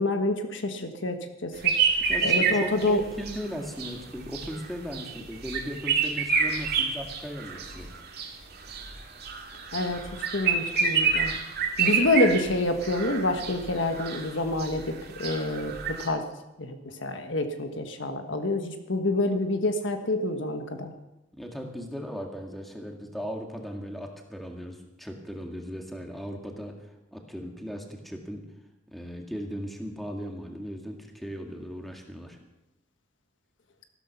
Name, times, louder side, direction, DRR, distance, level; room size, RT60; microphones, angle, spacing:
voice 1, 0.0-1.7 2.2-3.0 9.7-10.0 10.3-11.3 11.8-16.2 16.6-20.9, left 2 dB, 70° left, 6 dB, 1.4 m, -27 dB
sound 1, 1.6-16.1, right 5 dB, 60° right, 2.3 m, -29 dB
voice 2, 2.1-7.9 21.3-28.5 28.9-32.4, equal, ahead, 2 dB, 1.9 m, -37 dB
14.5 x 12.5 x 5.8 m, 0.96 s
head